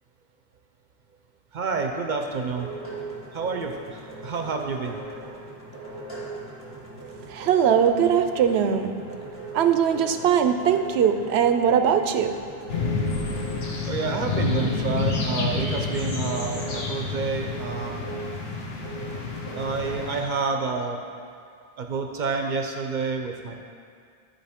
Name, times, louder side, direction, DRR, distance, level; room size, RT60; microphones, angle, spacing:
voice 1, 1.5-2.7 3.3-5.0 13.9-18.1 19.6-21.0 21.8-23.5, right 4 dB, 55° right, 3 dB, 0.6 m, -29 dB
sound 1, 2.2-20.2, right 3 dB, 10° left, 1.4 m, -39 dB
voice 2, 7.3-9.0 9.5-12.4, right 8 dB, 85° right, 7 dB, 0.8 m, -21 dB
sound 2, 12.7-20.2, left 4 dB, 75° left, 1.1 m, -29 dB
12.5 x 4.3 x 3.5 m, 2.2 s
omnidirectional pair, 1.1 m